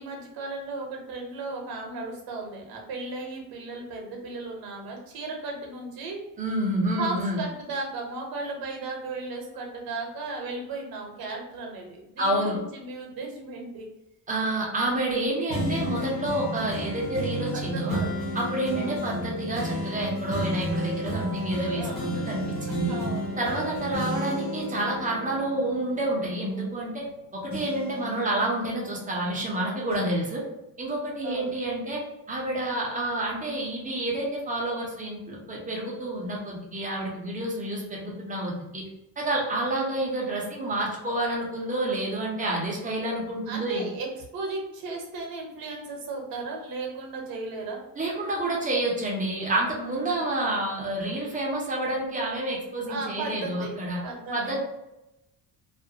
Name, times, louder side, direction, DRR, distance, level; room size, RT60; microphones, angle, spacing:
voice 1, 0.0-6.2 7.0-13.9 17.5-18.1 18.7-18.9 21.7-22.1 22.7-23.3 31.2-31.6 43.5-47.8 49.7-50.2 52.9-53.7 54.0-54.6, right 3 dB, 60° right, 1 dB, 0.8 m, -36 dB
voice 2, 6.4-7.4 12.2-12.6 14.3-18.0 18.3-23.0 23.4-27.0 27.3-30.4 30.8-32.0 32.3-38.8 39.2-43.8 47.9-54.0 54.3-54.6, right 1 dB, 20° right, -3 dB, 0.5 m, -29 dB
sound 1, 15.5-27.1 27.5-29.4 29.9-30.0, equal, 25° left, 0.7 m, -32 dB
2.4 x 2.2 x 2.7 m, 0.92 s
cardioid pair, 160°, 40 cm